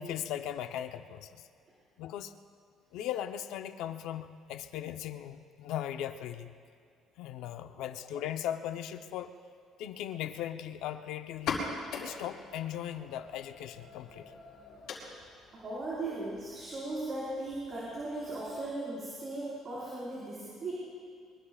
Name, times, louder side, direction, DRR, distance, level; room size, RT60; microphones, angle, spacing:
voice 1, 0.0-1.5 2.0-2.3 2.9-6.5 7.2-9.4 9.8-11.6 12.0-14.3, left 10 dB, 85° left, 7 dB, 0.8 m, -38 dB
sound 1, 11.3-18.7, left 4 dB, 70° left, 5.0 m, -43 dB
voice 2, 15.5-20.7, right 2 dB, 35° right, -7 dB, 4.8 m, -37 dB
24.5 x 23.5 x 2.4 m, 2.3 s
cardioid pair, 150°, 0 cm